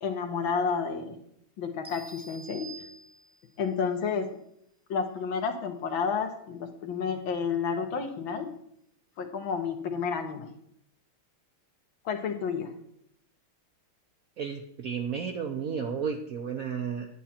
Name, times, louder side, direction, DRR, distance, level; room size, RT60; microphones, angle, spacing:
voice 1, 0.0-1.2 1.6-2.7 3.6-4.3 4.9-8.5 9.2-10.5 12.1-12.7, left 6 dB, 70° left, 5 dB, 1.9 m, -30 dB
sound 1, 1.8-3.6, right 3 dB, 5° right, 0.8 m, -47 dB
voice 2, 14.4-17.1, right 6 dB, 65° right, 4 dB, 0.9 m, -32 dB
11.0 x 8.9 x 4.3 m, 0.70 s
omnidirectional pair, 2.3 m